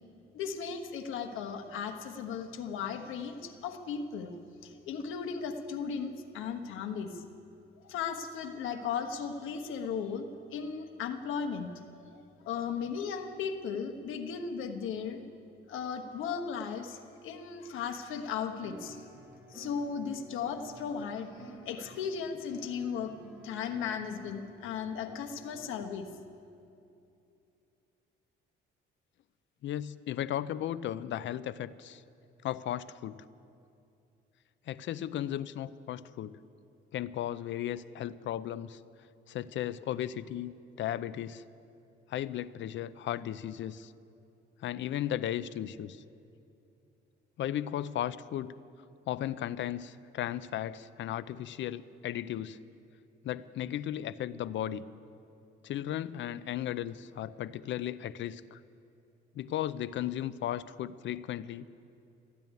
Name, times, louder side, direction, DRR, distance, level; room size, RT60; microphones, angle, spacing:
voice 1, 0.3-4.3 4.6-7.2 7.8-11.8 12.1-15.2 15.7-19.1 19.5-23.1 23.4-26.1, left 6 dB, 85° left, 5 dB, 1.2 m, -36 dB
sound 1, 18.6-26.0, right 1 dB, 10° right, 3.0 m, -51 dB
voice 2, 29.6-32.0 32.4-33.2 34.7-36.4 36.9-38.8 39.3-41.4 42.1-43.9 44.6-46.0 47.4-48.5 49.1-52.6 53.2-54.9 55.6-58.6 59.3-61.7, left 11 dB, 70° left, 17 dB, 0.5 m, -35 dB
14.0 x 10.5 x 9.4 m, 2.7 s
cardioid pair, 90°, 20 cm